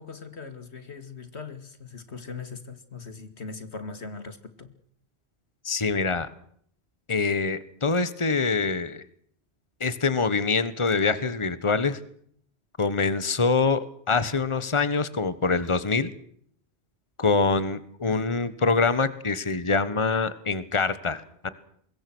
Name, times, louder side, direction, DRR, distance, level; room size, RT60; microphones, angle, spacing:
voice 1, 0.0-4.7 18.1-18.3, left 4 dB, 85° left, 2.7 m, -40 dB
voice 2, 5.6-6.3 7.1-9.0 9.8-12.0 12.8-16.1 17.2-21.5, left 4 dB, 30° left, 1.4 m, -25 dB
24.5 x 21.5 x 6.3 m
omnidirectional pair, 1.1 m